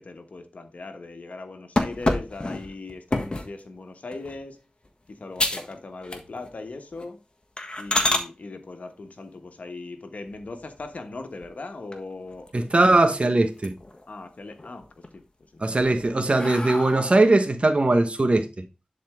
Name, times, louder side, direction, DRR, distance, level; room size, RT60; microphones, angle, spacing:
voice 1, 0.0-4.5 5.2-7.2 7.8-12.5 14.1-14.8 15.1-15.2 15.5-15.9, left 3 dB, 80° left, 1.2 m, -39 dB
sound 1, 1.8-3.5 4.1-4.4 4.8-4.9 5.4-5.7 6.0-6.6 6.9-7.1 7.6-8.3 10.3-10.9 11.4-11.5 11.9-12.0 12.3-13.1 13.4-14.0 14.4-15.1 15.6-17.3, left 2 dB, 40° left, 1.4 m, -28 dB
voice 2, 12.5-13.7 15.6-18.6, right 2 dB, 55° right, 1.2 m, -20 dB
10.5 x 4.3 x 3.6 m
wide cardioid pair, 45°, 2 cm